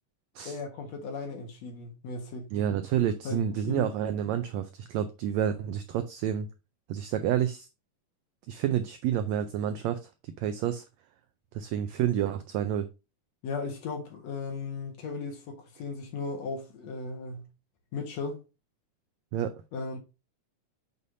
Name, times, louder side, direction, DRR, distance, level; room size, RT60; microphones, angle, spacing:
voice 1, 0.5-2.5 3.2-3.9 13.4-17.5 17.9-18.4 19.7-20.0, left 4 dB, 60° left, 2.4 m, -36 dB
voice 2, 2.5-6.5 6.9-7.7 8.5-10.8 11.5-12.9 19.3-19.5, right 10 dB, 85° right, 1.5 m, -29 dB
6.6 x 5.5 x 2.6 m
omnidirectional pair, 3.6 m